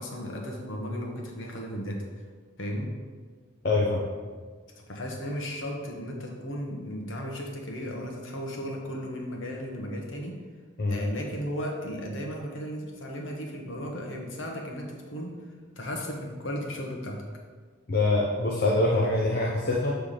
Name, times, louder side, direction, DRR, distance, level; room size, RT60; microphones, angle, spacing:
voice 1, 0.0-2.0 2.6-2.9 4.8-10.3 10.9-15.3 15.8-17.2, equal, 75° left, 0 dB, 1.1 m, -35 dB
voice 2, 3.6-4.0 10.8-11.0 17.9-20.0, left 2 dB, 50° left, -2 dB, 0.7 m, -24 dB
6.7 x 3.4 x 5.7 m, 1.5 s
head